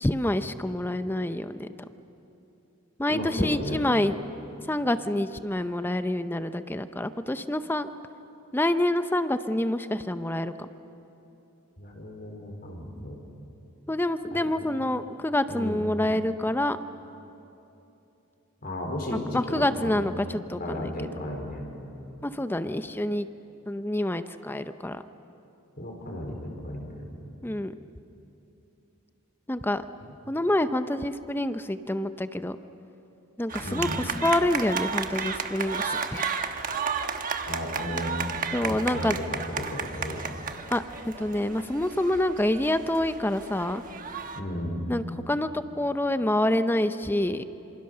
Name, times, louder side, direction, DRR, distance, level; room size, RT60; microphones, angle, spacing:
voice 1, 0.0-1.7 3.0-4.2 4.7-7.9 8.5-10.7 13.9-16.8 19.3-20.9 22.2-23.3 23.7-25.0 27.4-27.7 29.5-29.8 30.3-32.6 33.4-36.2 38.5-39.2 40.7-43.8 44.9-47.4, left 1 dB, 10° left, 10 dB, 0.6 m, -27 dB
voice 2, 3.1-3.8 11.8-13.2 14.3-14.5 15.5-15.8 18.6-20.0 20.6-21.6 25.8-27.0 33.6-34.0 37.5-38.2 38.6-40.2 44.4-44.9, left 1 dB, 45° left, 1 dB, 4.4 m, -34 dB
sound 1, 33.5-44.4, right 6 dB, 40° right, 1.2 m, -33 dB
27.0 x 26.0 x 6.7 m, 3.0 s
head